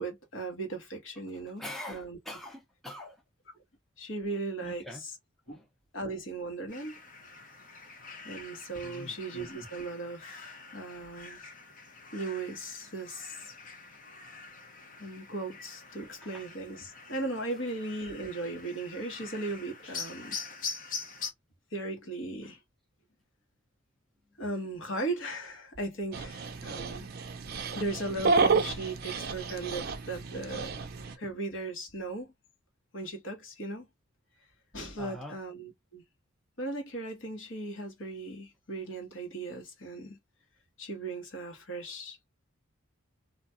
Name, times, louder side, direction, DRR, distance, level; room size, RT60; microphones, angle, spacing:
voice 1, 0.0-1.6 1.9-2.2 4.0-5.1 5.5-5.6 5.9-7.0 8.2-11.4 12.1-13.5 15.0-20.4 21.7-22.6 24.4-27.1 27.7-30.8 31.1-32.3 32.9-33.9 34.7-36.0 36.6-40.2 40.8-42.2, right 2 dB, 60° left, 1.1 m, -37 dB
voice 2, 1.3-3.2 4.6-5.0 5.5-5.7 8.8-9.1 16.2-16.4 35.0-35.4, left 1 dB, ahead, 0.5 m, -44 dB
sound 1, 6.7-21.3, left 5 dB, 40° left, 0.8 m, -44 dB
Dog, 26.1-31.1, right 4 dB, 45° right, 0.5 m, -30 dB
2.4 x 2.2 x 2.6 m
head